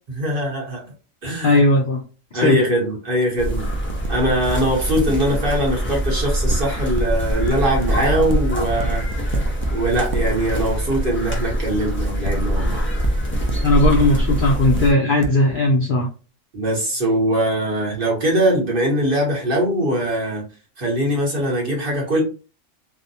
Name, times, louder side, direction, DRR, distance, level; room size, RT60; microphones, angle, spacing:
voice 1, 0.1-0.9 1.2-1.6 2.3-3.7 4.1-9.3 9.7-12.9 16.5-20.5 20.8-22.2, right 1 dB, 45° right, -2 dB, 1.0 m, -22 dB
voice 2, 1.4-2.0 2.4-2.6 13.6-16.1, left 1 dB, 60° left, -1 dB, 0.5 m, -17 dB
sound 1, 3.4-14.9, equal, 15° left, 0.4 m, -23 dB
sound 2, 3.7-4.1 4.5-4.6 4.9-5.0 6.5-7.0 7.5-8.0 8.3-8.4 8.8-9.7 10.1-10.2 11.7-11.8 12.2-12.4 12.7-13.1 13.5-13.6 14.0-14.8 15.2-15.3, right 3 dB, 70° right, 0.5 m, -28 dB
2.6 x 2.1 x 2.6 m, 0.35 s
omnidirectional pair, 1.4 m